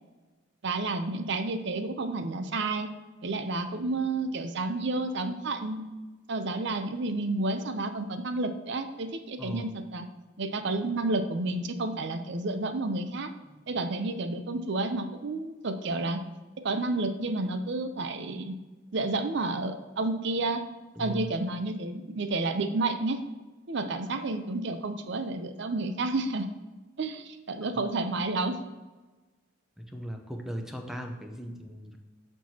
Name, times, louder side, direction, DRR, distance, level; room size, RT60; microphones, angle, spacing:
voice 1, 0.6-2.9 3.2-5.8 6.3-10.1 10.4-13.3 13.7-16.2 16.6-18.5 18.9-20.6 21.0-23.2 23.7-26.5 27.0-28.6, right 2 dB, 60° right, 8 dB, 0.6 m, -30 dB
voice 2, 9.4-9.7 13.5-13.6 21.0-21.3 27.7-27.9 29.8-32.0, equal, ahead, 3 dB, 0.7 m, -38 dB
13.0 x 4.6 x 2.8 m, 1.2 s
head